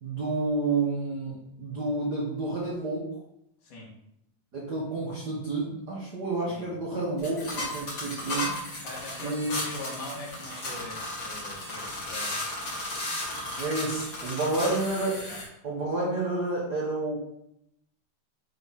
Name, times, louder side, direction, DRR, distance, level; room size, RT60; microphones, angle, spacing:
voice 1, 0.0-3.0 4.5-8.5 9.2-9.6 13.6-15.2 15.6-17.2, right 2 dB, 80° right, -6 dB, 0.9 m, -30 dB
sound 1, 7.2-15.4, left 1 dB, 35° left, 2.2 m, -35 dB
voice 2, 8.8-12.4 15.2-15.4, left 1 dB, 70° left, -3 dB, 2.9 m, -42 dB
8.0 x 4.1 x 3.7 m, 0.79 s
omnidirectional pair, 3.9 m